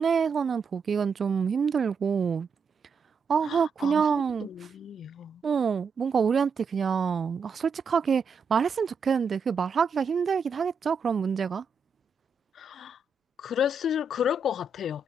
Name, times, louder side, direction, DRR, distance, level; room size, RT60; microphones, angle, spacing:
voice 1, 0.0-2.5 3.3-4.5 5.4-8.2 8.5-11.6, right 6 dB, 30° right, 0.3 m, -26 dB
voice 2, 3.4-4.0 4.4-5.4 12.5-13.0 13.4-15.0, left 9 dB, 40° left, 0.6 m, -31 dB
hypercardioid pair, 80°, 0 cm